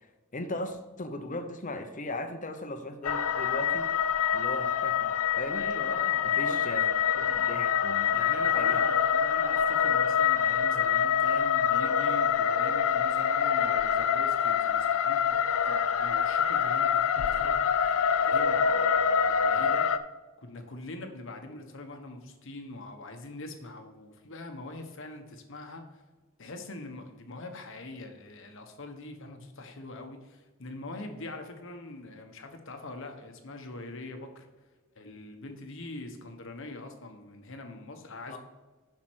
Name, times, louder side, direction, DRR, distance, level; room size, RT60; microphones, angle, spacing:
voice 1, 0.3-3.9 4.3-5.7 6.4-6.9 7.1-8.2 8.5-8.8 38.3-38.4, left 1 dB, 40° left, 7 dB, 0.9 m, -38 dB
sound 1, 3.0-20.0, left 7 dB, 80° left, 0.5 m, -26 dB
voice 2, 5.5-6.6 6.9-7.5 8.1-15.4 15.6-19.9 20.4-26.0 26.4-34.5 34.9-38.4, left 2 dB, 65° left, 5 dB, 1.3 m, -43 dB
7.5 x 6.0 x 6.2 m, 1.2 s
head